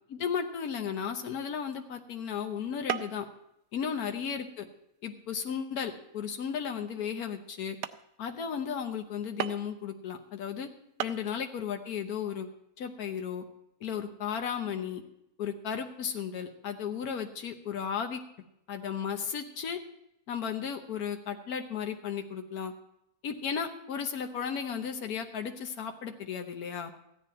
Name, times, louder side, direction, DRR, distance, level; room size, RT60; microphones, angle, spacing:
voice 1, 0.1-3.3 3.7-4.7 5.0-7.8 8.2-10.7 11.0-12.5 12.8-13.4 13.8-15.0 15.4-18.2 18.7-19.8 20.3-22.7 23.2-26.9, left 7 dB, 90° left, 5 dB, 1.4 m, -34 dB
sound 1, 1.7-1.9 2.9-3.3 3.7-4.1 4.6-4.8 5.3-5.6 6.2-6.3 6.8-6.9 7.4-7.5 7.8-8.1 9.4-9.8 10.6-10.7 11.0-11.2, right 10 dB, 80° right, 1.1 m, -35 dB
15.0 x 10.0 x 4.2 m, 0.79 s
omnidirectional pair, 1.5 m